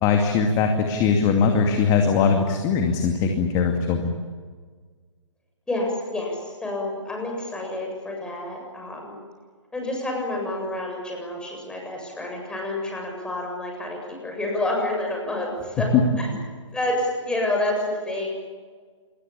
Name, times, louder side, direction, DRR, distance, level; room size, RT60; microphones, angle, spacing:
voice 1, 0.0-4.2 15.9-16.0, left 5 dB, 25° left, 4 dB, 2.5 m, -20 dB
voice 2, 5.7-9.2 9.7-16.3 16.7-18.3, left 1 dB, 5° left, 0 dB, 7.6 m, -29 dB
28.5 x 22.0 x 8.7 m, 1.5 s
figure-of-eight pair, 135°, 16 cm